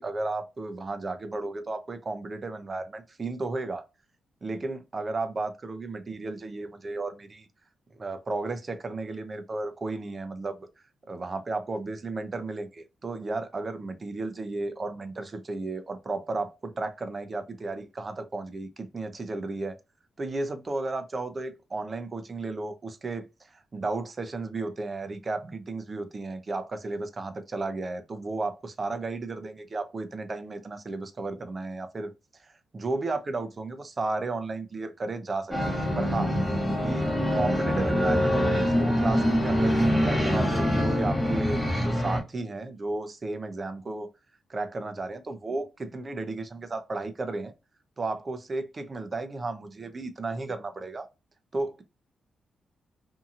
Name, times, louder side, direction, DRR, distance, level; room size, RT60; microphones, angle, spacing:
voice 1, 0.0-3.8 4.4-7.5 8.0-10.7 11.1-19.8 20.2-36.3 36.8-44.1 44.5-47.5 48.0-51.1 51.5-51.8, right 3 dB, 35° right, 0.5 m, -34 dB
sound 1, 35.5-42.2, equal, 5° left, 1.1 m, -24 dB
2.7 x 2.7 x 2.4 m
cardioid pair, 95°, 0 cm